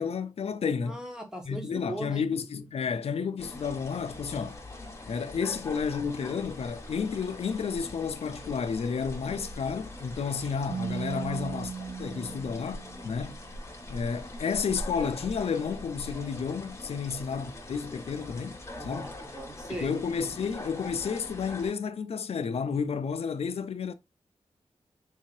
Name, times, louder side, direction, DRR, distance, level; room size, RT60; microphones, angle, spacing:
voice 1, 0.0-1.0 1.4-4.6 5.1-13.4 13.9-19.1 19.8-23.9, left 6 dB, 65° left, 0.4 m, -31 dB
voice 2, 0.8-2.2 11.1-11.4 18.8-19.9, right 1 dB, 5° right, 1.0 m, -39 dB
sound 1, 3.4-21.7, left 1 dB, 25° left, 0.8 m, -42 dB
Keyboard (musical), 10.7-13.4, right 5 dB, 65° right, 0.7 m, -37 dB
3.6 x 2.7 x 3.1 m
wide cardioid pair, 110°, 11 cm